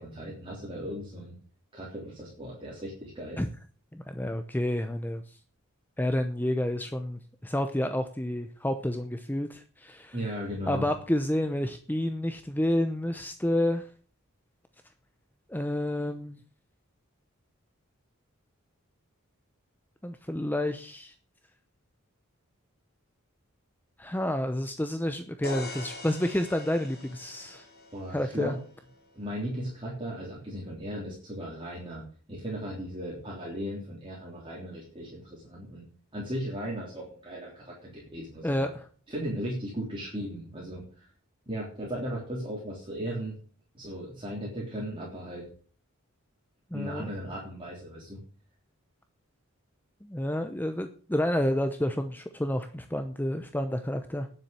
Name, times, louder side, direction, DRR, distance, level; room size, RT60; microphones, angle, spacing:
voice 1, 0.0-1.4 1.7-3.4 10.1-10.9 27.9-28.6 29.1-32.0 32.3-35.9 36.1-38.7 39.1-41.1 41.5-43.4 43.7-45.5 46.7-48.2, equal, 25° right, -5 dB, 3.6 m, -37 dB
voice 2, 3.9-5.4 6.0-10.2 10.7-13.9 15.5-16.4 20.0-21.1 24.0-27.6 28.1-28.6 38.4-38.8 46.7-47.1 50.0-54.3, left 1 dB, 10° left, 8 dB, 0.8 m, -29 dB
sound 1, 25.4-29.3, left 2 dB, 50° left, 3.3 m, -43 dB
10.0 x 7.5 x 8.8 m, 0.42 s
head